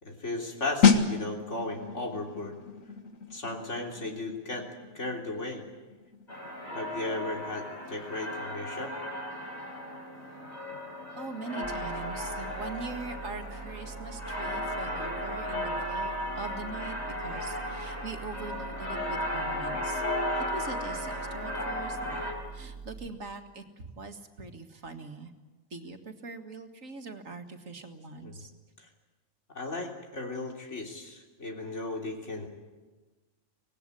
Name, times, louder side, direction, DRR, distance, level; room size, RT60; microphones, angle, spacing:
voice 1, 0.0-2.6 3.3-4.7 4.9-5.6 6.8-8.9 28.2-28.4 28.8-28.9 29.5-32.5, left 2 dB, 60° left, 1 dB, 3.7 m, -36 dB
sound 1, 0.8-11.3 11.6-11.9, left 5 dB, 80° left, 1.9 m, -32 dB
sound 2, 6.3-22.3, left 1 dB, 30° left, 4.6 m, -35 dB
voice 2, 11.2-20.1 20.5-25.3 25.7-28.5, right 3 dB, 75° right, 5 dB, 2.2 m, -42 dB
sound 3, 11.6-23.1, right 5 dB, 20° right, 1.9 m, -44 dB
24.5 x 18.0 x 9.8 m, 1.3 s
omnidirectional pair, 1.4 m